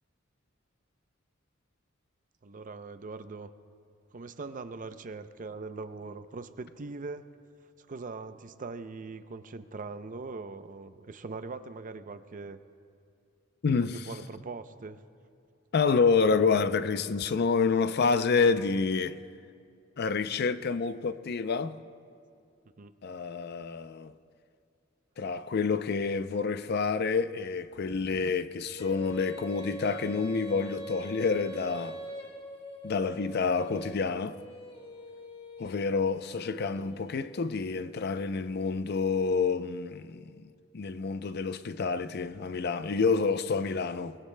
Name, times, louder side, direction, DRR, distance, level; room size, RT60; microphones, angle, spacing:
voice 1, 2.4-3.5 4.1-7.3 7.8-12.6 13.9-15.0 22.8-22.9, right 3 dB, 40° right, 0.5 m, -41 dB
voice 2, 13.6-14.1 15.7-19.2 20.0-21.8 23.0-24.1 25.2-32.0 32.8-34.4 35.6-40.4 40.7-44.2, left 4 dB, 55° left, 0.5 m, -28 dB
Female singing, 28.7-37.6, right 1 dB, 30° left, 2.1 m, -43 dB
23.0 x 22.0 x 2.2 m
head